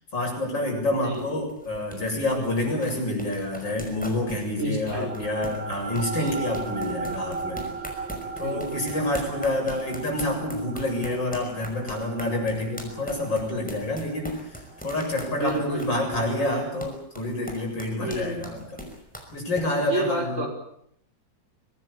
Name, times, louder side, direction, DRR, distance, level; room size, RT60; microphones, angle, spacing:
voice 1, 0.1-7.6 8.4-18.9 19.3-20.4, left 1 dB, 75° left, 1 dB, 8.3 m, -28 dB
sound 1, 0.6-19.7, equal, 5° left, 5.7 m, -41 dB
voice 2, 1.0-1.5 4.6-5.1 6.1-6.6 8.4-9.0 15.3-16.3 18.0-18.6 19.8-20.5, right 1 dB, 40° right, 2 dB, 5.8 m, -31 dB
sound 2, 4.9-15.7, right 4 dB, 75° right, 2.2 m, -37 dB
24.5 x 19.0 x 8.7 m, 0.72 s
omnidirectional pair, 2.0 m